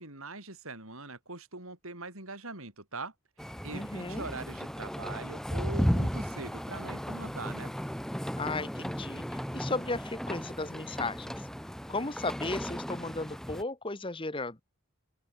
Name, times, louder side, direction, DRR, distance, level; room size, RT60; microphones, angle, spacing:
voice 1, 0.0-3.1 3.6-7.7, right 3 dB, 75° right, 7.7 m, -42 dB
sound 1, 3.4-13.6, equal, ahead, 1.2 m, -35 dB
voice 2, 3.7-4.2 8.4-11.5 11.9-14.6, left 3 dB, 25° left, 1.2 m, -35 dB
head